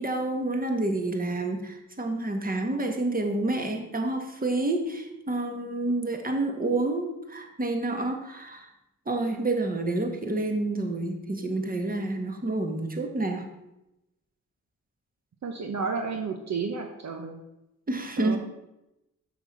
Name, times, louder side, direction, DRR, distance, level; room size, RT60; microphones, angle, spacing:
voice 1, 0.0-8.7 9.0-13.5 17.9-18.4, right 2 dB, 25° right, 4 dB, 1.6 m, -29 dB
voice 2, 15.4-17.4 18.2-18.4, right 5 dB, 55° right, 4 dB, 1.0 m, -32 dB
7.0 x 6.2 x 5.4 m, 0.90 s
cardioid pair, 60°, 32 cm